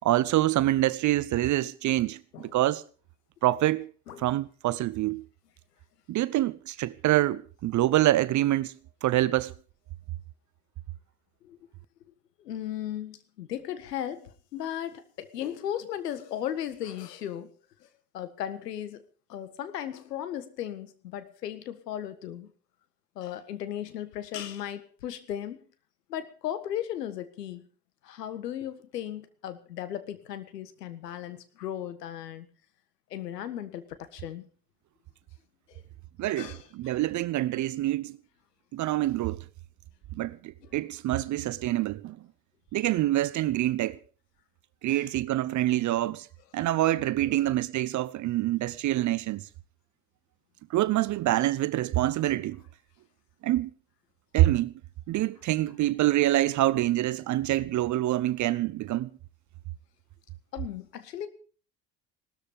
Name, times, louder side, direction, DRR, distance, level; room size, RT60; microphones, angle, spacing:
voice 1, 0.0-2.8 3.4-3.9 4.2-5.2 6.1-8.7 9.0-9.5 36.2-38.2 38.7-39.4 40.1-42.2 42.7-44.0 44.8-46.3 46.5-49.5 50.7-52.6 53.4-53.7 54.3-54.7 55.1-59.1, right 15 dB, 40° right, 0.7 m, -26 dB
voice 2, 12.4-17.5 17.8-17.9 18.1-19.0 19.3-22.5 23.1-25.6 26.1-27.6 28.0-32.5 33.1-34.4 35.7-35.8 36.4-37.0 40.6-40.8 44.9-45.1 47.2-47.5 60.5-61.3, left 11 dB, 75° left, 1.7 m, -36 dB
18.0 x 13.0 x 5.2 m
figure-of-eight pair, 60°, 48 cm